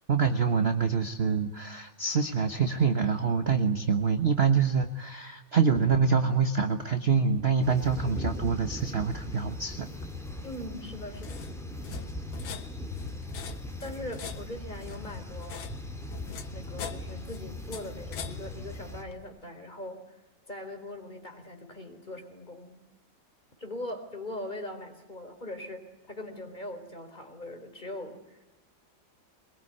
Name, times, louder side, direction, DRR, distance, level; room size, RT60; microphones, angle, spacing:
voice 1, 0.1-9.9, right 5 dB, 35° right, 7 dB, 1.2 m, -26 dB
sound 1, 7.6-19.0, left 1 dB, ahead, 3.2 m, -39 dB
sound 2, 10.0-19.3, left 7 dB, 85° left, 2.1 m, -44 dB
voice 2, 10.4-11.5 13.8-15.7 16.5-20.2 20.5-22.8 23.6-28.4, left 1 dB, 20° left, 6 dB, 3.9 m, -41 dB
22.5 x 22.0 x 9.8 m, 0.99 s
omnidirectional pair, 2.1 m